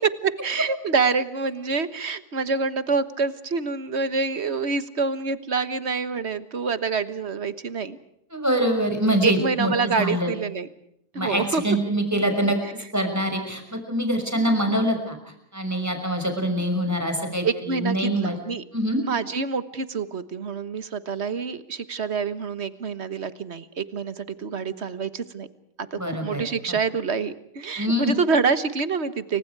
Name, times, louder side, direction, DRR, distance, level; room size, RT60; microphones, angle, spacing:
voice 1, 0.2-8.0 9.2-10.7 11.1-11.8 17.4-18.6 19.0-25.5 25.9-29.4, right 4 dB, 45° right, 13 dB, 1.5 m, -26 dB
voice 2, 8.3-10.4 11.1-12.6 12.9-15.2 15.5-18.4 18.7-19.0 26.0-26.4 26.7-26.8 27.8-28.2, equal, 10° right, 4 dB, 6.0 m, -24 dB
29.5 x 25.0 x 4.8 m, 0.75 s
omnidirectional pair, 1.7 m